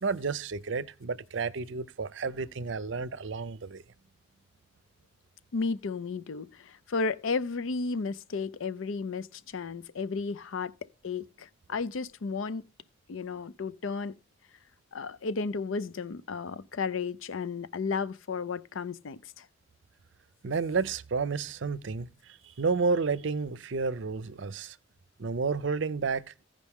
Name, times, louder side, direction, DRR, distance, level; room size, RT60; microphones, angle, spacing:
voice 1, 0.0-3.8 20.4-24.8 25.2-26.2, right 4 dB, 65° right, 0.5 m, -31 dB
voice 2, 5.5-10.7 11.0-12.6 13.1-14.1 14.9-19.5, left 4 dB, 75° left, 0.5 m, -33 dB
15.5 x 5.2 x 3.6 m
head